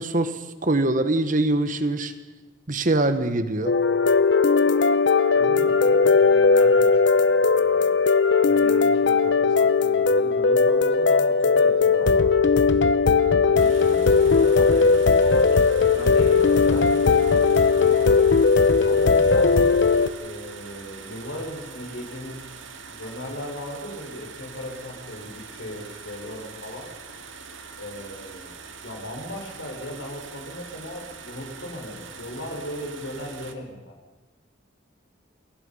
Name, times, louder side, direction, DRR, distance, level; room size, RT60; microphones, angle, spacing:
voice 1, 0.0-2.1 2.7-3.8, right 2 dB, 45° right, 1.4 m, -23 dB
sound 1, 3.7-20.1, left 4 dB, 65° left, 0.9 m, -18 dB
voice 2, 5.3-7.9 8.4-12.3 13.4-18.2 18.8-19.7 20.2-22.4 22.9-26.9 27.8-28.5 28.8-33.9, equal, 80° left, 5.4 m, -37 dB
sound 2, 13.6-33.5, right 5 dB, 90° right, 2.3 m, -43 dB
29.0 x 22.0 x 5.7 m
head